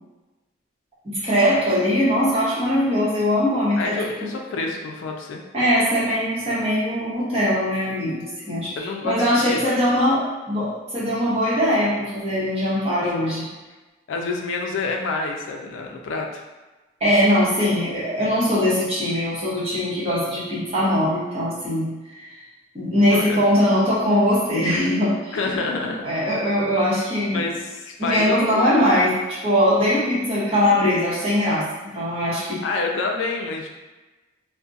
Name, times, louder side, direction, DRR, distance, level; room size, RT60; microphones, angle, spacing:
voice 1, 1.0-4.3 5.5-8.7 9.0-13.5 17.0-22.3 22.7-25.4 26.0-27.4 28.0-31.6 31.9-32.6, equal, 30° right, -10 dB, 0.9 m, -21 dB
voice 2, 3.8-5.4 8.8-9.6 13.0-13.1 14.1-16.4 23.1-23.4 25.3-26.1 26.7-26.9 27.3-28.7 30.1-30.4 32.3-33.7, left 3 dB, 75° left, 1 dB, 0.3 m, -28 dB
2.4 x 2.1 x 2.6 m, 1.2 s
head